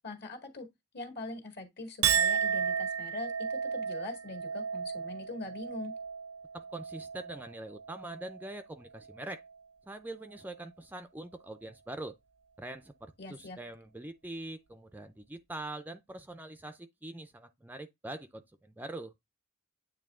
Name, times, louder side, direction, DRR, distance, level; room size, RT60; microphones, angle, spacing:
voice 1, 0.0-0.7 0.9-5.9 13.2-13.6, left 2 dB, 50° left, 1.9 m, -42 dB
Chink clink, 2.0-8.6 9.0-9.5, right 7 dB, 80° right, 0.6 m, -34 dB
voice 2, 6.5-9.4 9.9-12.1 12.6-19.1, right 2 dB, 10° right, 0.4 m, -43 dB
8.9 x 3.1 x 3.6 m
head